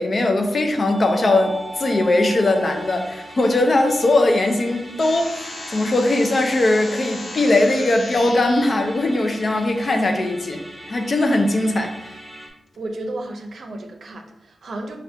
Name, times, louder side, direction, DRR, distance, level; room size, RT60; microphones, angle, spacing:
voice 1, 0.0-11.9, left 2 dB, 45° left, 4 dB, 0.6 m, -20 dB
Musical instrument, 0.8-12.5, right 1 dB, 20° right, 0.9 m, -39 dB
sound 1, 5.0-8.6, left 2 dB, 85° left, 0.9 m, -35 dB
voice 2, 12.8-15.0, right 2 dB, 75° right, 4 dB, 0.6 m, -33 dB
4.3 x 2.5 x 3.3 m, 0.88 s
wide cardioid pair, 85°, 0 cm